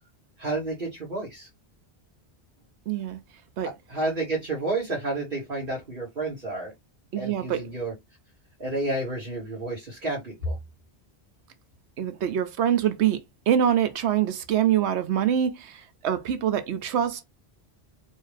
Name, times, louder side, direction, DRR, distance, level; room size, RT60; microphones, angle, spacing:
voice 1, 0.4-1.5 3.6-6.7 7.2-7.9 8.6-10.6, right 2 dB, 55° right, 1.7 m, -30 dB
voice 2, 2.9-3.2 3.6-3.7 7.1-7.6 12.0-17.2, right 9 dB, 90° right, 1.0 m, -25 dB
4.5 x 2.8 x 3.3 m
omnidirectional pair, 1.1 m